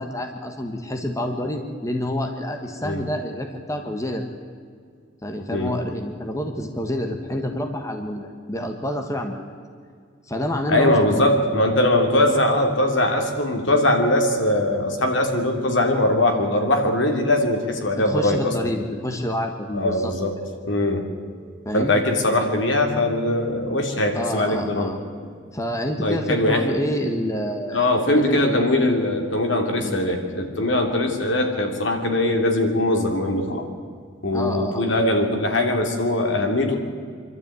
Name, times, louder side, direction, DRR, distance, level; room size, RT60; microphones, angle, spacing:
voice 1, 0.0-4.3 5.2-9.5 10.3-11.3 17.9-20.1 21.6-21.9 24.1-25.0 25.5-27.9 28.3-28.6 29.8-30.0 34.3-34.8, left 1 dB, 15° left, 4 dB, 1.5 m, -28 dB
voice 2, 10.7-18.7 19.7-20.4 20.6-21.1 21.4-21.5 21.7-24.9 25.2-25.3 26.0-26.7 27.7-33.6 34.2-36.8, left 1 dB, 75° left, 3 dB, 3.0 m, -21 dB
25.5 x 12.5 x 9.3 m, 2.1 s
head